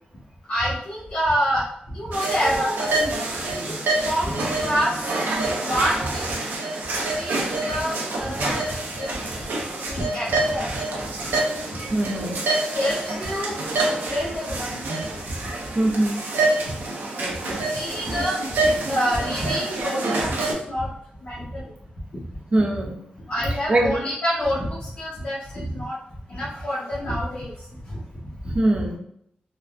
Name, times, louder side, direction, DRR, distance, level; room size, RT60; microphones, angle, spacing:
voice 1, 0.5-1.6 1.9-2.9 3.6-5.0 5.6-6.2 7.2-7.9 8.2-8.6 9.0-9.1 9.3-9.4 9.9-10.7 11.3-11.4 12.7-13.5 14.1-14.7 17.4-18.4 18.9-20.3 20.6-20.9 21.2-21.6 23.3-25.9 26.3-27.5 27.9-28.0, equal, 60° left, -11 dB, 1.1 m, -27 dB
sound 1, 2.1-20.5, right 2 dB, 85° right, 0.6 m, -27 dB
voice 2, 11.9-12.4 15.7-16.2 17.2-17.6 22.5-23.0 23.7-23.9 28.5-29.0, right 1 dB, 30° right, 1 dB, 0.5 m, -22 dB
3.8 x 2.2 x 2.4 m, 0.70 s
wide cardioid pair, 170°, 3 cm